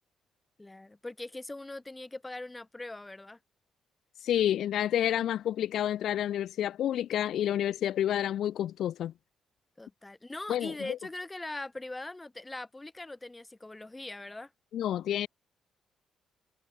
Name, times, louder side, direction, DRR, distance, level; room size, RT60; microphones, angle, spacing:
voice 1, 0.6-3.4 9.8-14.5, left 2 dB, 15° left, 3.4 m, -41 dB
voice 2, 4.2-9.1 10.5-11.0 14.7-15.3, left 11 dB, 75° left, 0.4 m, -29 dB
cardioid pair, 90°, 0 cm